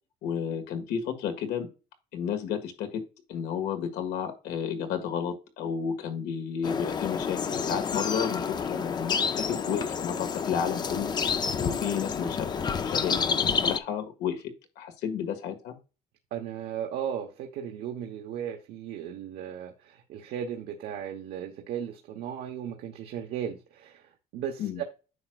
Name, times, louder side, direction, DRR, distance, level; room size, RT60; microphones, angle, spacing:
voice 1, 0.2-1.7 2.1-3.0 3.3-11.1 11.6-14.4 14.8-15.8 24.6-24.8, left 7 dB, 80° left, 1.9 m, -32 dB
sound 1, 6.6-13.8, left 6 dB, 25° left, 0.5 m, -29 dB
voice 2, 16.3-24.8, right 9 dB, 70° right, 1.1 m, -36 dB
9.6 x 6.3 x 2.4 m
cardioid pair, 160°, 17 cm